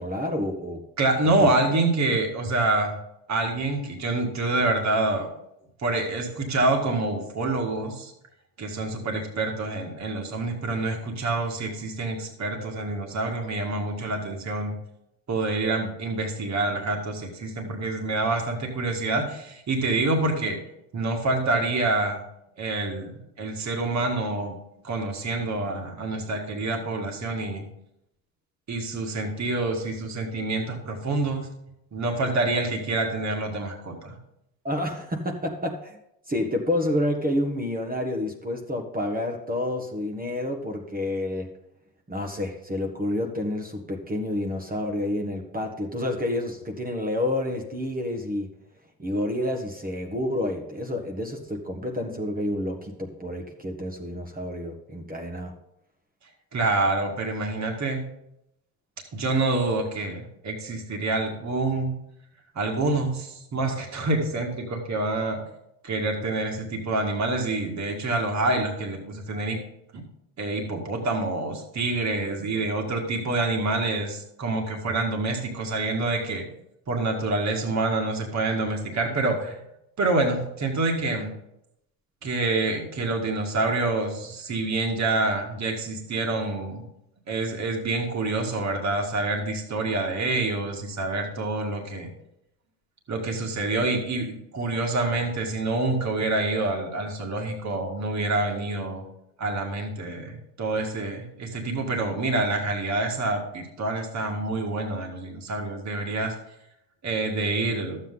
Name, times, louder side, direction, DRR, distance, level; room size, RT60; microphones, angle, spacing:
voice 1, 0.0-0.8 1.4-1.5 34.6-36.0 36.3-41.5 42.1-48.5 49.0-55.6, left 1 dB, 20° right, 3 dB, 1.3 m, -29 dB
voice 2, 1.0-3.0 3.3-5.3 5.8-8.1 8.6-14.8 15.3-20.6 20.9-22.2 22.6-24.6 24.8-27.6 28.7-31.5 31.9-34.2 56.5-58.0 59.1-61.9 62.6-65.4 65.8-69.6 69.9-70.0 70.4-76.5 76.9-79.6 80.0-81.3 82.2-86.8 87.3-92.1 93.1-99.0 99.4-106.3 107.0-108.0, right 2 dB, 35° right, 2 dB, 2.0 m, -27 dB
11.5 x 8.0 x 3.9 m, 0.80 s
supercardioid pair, 90°, 47 cm